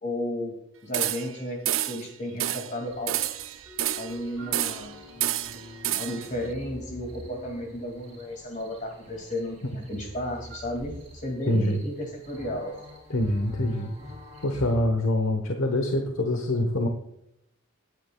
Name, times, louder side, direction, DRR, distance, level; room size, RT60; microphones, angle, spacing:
voice 1, 0.0-3.2 3.9-5.0 5.5-5.6 5.9-12.8, left 1 dB, 40° left, 3 dB, 2.3 m, -33 dB
sound 1, 0.9-1.4 1.6-2.0 2.4-2.7 3.1-4.2 4.5-4.9 5.2-6.3, right 13 dB, 75° right, 0.4 m, -29 dB
sound 2, 2.9-14.7, equal, 35° right, 5.1 m, -43 dB
sound 3, 3.7-8.3, left 2 dB, 15° right, 3.9 m, -50 dB
voice 2, 11.5-11.8 13.1-13.9 14.4-16.9, left 1 dB, 85° left, 4 dB, 1.1 m, -25 dB
19.0 x 9.8 x 2.3 m, 0.80 s
head